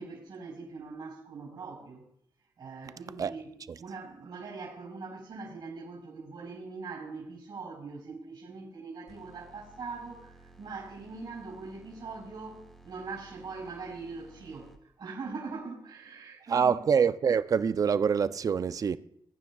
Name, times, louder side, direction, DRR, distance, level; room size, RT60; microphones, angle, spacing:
voice 1, 0.0-2.1 2.6-16.7, right 4 dB, 65° right, 4.2 m, -42 dB
sound 1, 9.1-14.8, right 2 dB, 5° left, 1.3 m, -55 dB
voice 2, 16.5-19.0, right 6 dB, 45° right, 0.4 m, -25 dB
20.5 x 9.5 x 2.3 m
cardioid pair, 105°, 8 cm